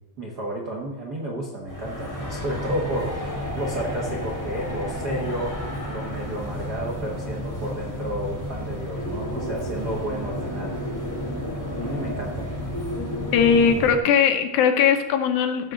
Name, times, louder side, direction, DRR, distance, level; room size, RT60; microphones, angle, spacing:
voice 1, 0.2-10.8 11.8-12.5, right 1 dB, 65° right, -2 dB, 1.0 m, -32 dB
sound 1, 1.7-14.0, equal, 20° left, 0.4 m, -31 dB
voice 2, 13.3-15.7, left 7 dB, 85° left, 6 dB, 2.8 m, -19 dB
15.5 x 6.2 x 3.9 m, 1.2 s
omnidirectional pair, 4.1 m